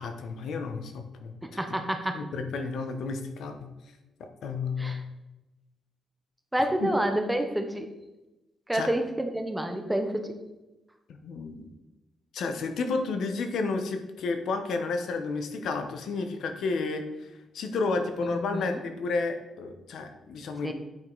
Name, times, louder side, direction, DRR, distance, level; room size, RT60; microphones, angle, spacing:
voice 1, 0.0-1.4 2.1-3.6 4.2-5.1 6.8-6.9 8.7-8.9 11.2-11.6 12.3-17.3 17.5-20.7, left 4 dB, 70° left, 6 dB, 1.0 m, -31 dB
voice 2, 1.4-2.2 4.8-5.0 6.5-7.9 8.7-10.4 18.2-18.8 20.6-20.7, right 1 dB, 5° right, 6 dB, 0.8 m, -29 dB
9.1 x 5.2 x 3.9 m, 1.0 s
cardioid pair, 135°, 0 cm